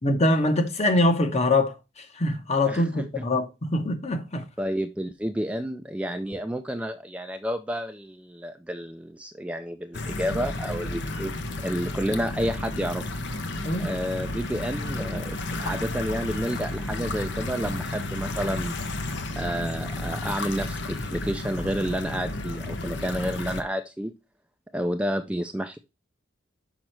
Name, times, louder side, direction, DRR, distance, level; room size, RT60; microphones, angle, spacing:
voice 1, 0.0-4.5 13.6-13.9, left 2 dB, 35° left, 1.1 m, -24 dB
voice 2, 4.6-11.3 11.6-13.1 13.4-18.8 19.4-24.1 24.7-25.8, equal, 5° right, 0.4 m, -30 dB
sound 1, 9.9-23.6, left 2 dB, 60° left, 1.0 m, -32 dB
6.1 x 5.4 x 4.4 m
head